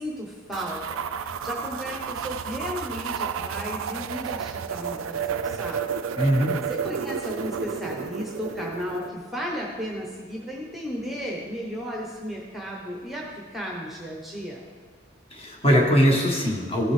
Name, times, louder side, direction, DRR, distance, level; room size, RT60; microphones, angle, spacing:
voice 1, 0.0-5.9 6.7-14.6, equal, ahead, -2 dB, 0.9 m, -34 dB
sound 1, 0.5-9.1, right 7 dB, 80° right, 0.4 m, -31 dB
voice 2, 6.2-6.5 15.3-16.9, equal, 30° left, 0 dB, 1.3 m, -21 dB
15.0 x 6.0 x 3.3 m, 1.5 s
head